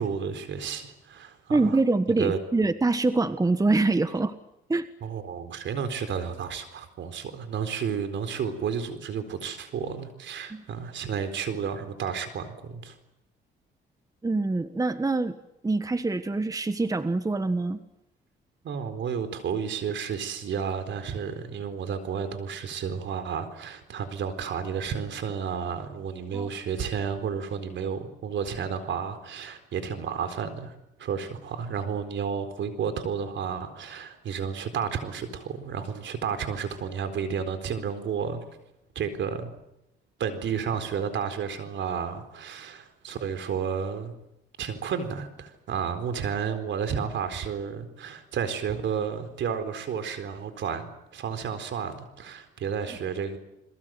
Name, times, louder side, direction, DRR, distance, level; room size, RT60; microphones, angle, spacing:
voice 1, 0.0-1.8 2.2-2.4 5.0-12.9 18.6-30.7 31.0-38.4 38.9-39.5 40.2-44.1 44.6-53.4, right 7 dB, 70° right, 8 dB, 4.3 m, -31 dB
voice 2, 1.5-4.3 4.7-4.8 10.5-10.6 14.2-15.3 15.6-17.8 26.3-26.5, right 3 dB, 15° right, 11 dB, 1.4 m, -25 dB
29.5 x 22.0 x 7.8 m, 0.86 s
cardioid pair, 90°, 20 cm